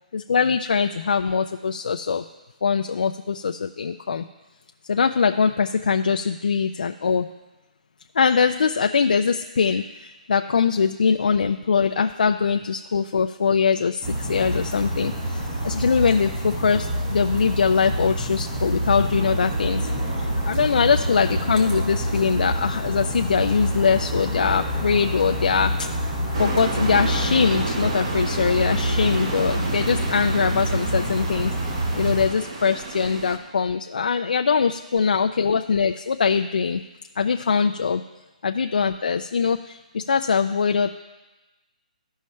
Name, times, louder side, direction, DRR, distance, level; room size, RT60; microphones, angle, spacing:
voice 1, 0.1-2.2 2.6-4.2 4.9-7.3 8.1-26.1 26.4-36.8 37.2-38.0 38.4-40.9, left 5 dB, 80° left, 5 dB, 0.4 m, -22 dB
sound 1, 14.0-32.3, equal, 25° right, 2.0 m, -27 dB
sound 2, 26.3-33.4, right 3 dB, 45° right, 1.1 m, -31 dB
15.0 x 5.5 x 3.2 m, 1.1 s
hypercardioid pair, 175°, 5 cm